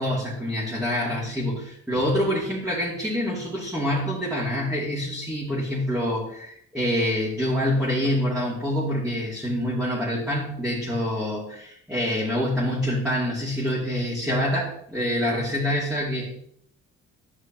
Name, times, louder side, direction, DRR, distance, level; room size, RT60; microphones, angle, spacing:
voice 1, 0.0-16.3, equal, 5° right, -8 dB, 2.7 m, -26 dB
11.5 x 5.5 x 3.1 m, 0.68 s
cardioid pair, 90°, 30 cm